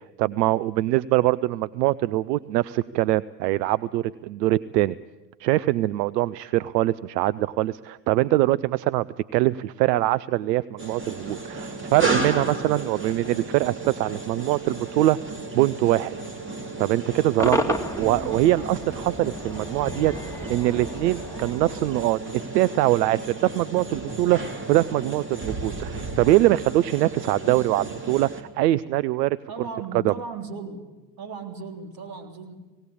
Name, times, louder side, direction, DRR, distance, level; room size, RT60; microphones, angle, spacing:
voice 1, 0.2-5.0 5.4-9.1 9.3-15.2 15.5-16.2 16.8-22.2 22.5-24.4 24.7-29.4 29.9-30.1, right 16 dB, 75° right, 19 dB, 0.6 m, -23 dB
sound 1, 10.8-28.4, right 2 dB, 25° right, 3.2 m, -34 dB
Cheering / Crowd / Fireworks, 17.4-22.7, left 1 dB, 5° left, 2.2 m, -32 dB
voice 2, 29.5-30.8 31.2-32.5, right 4 dB, 45° right, 6 dB, 3.6 m, -36 dB
19.0 x 17.5 x 8.5 m, 1.2 s
hypercardioid pair, 80°, 48 cm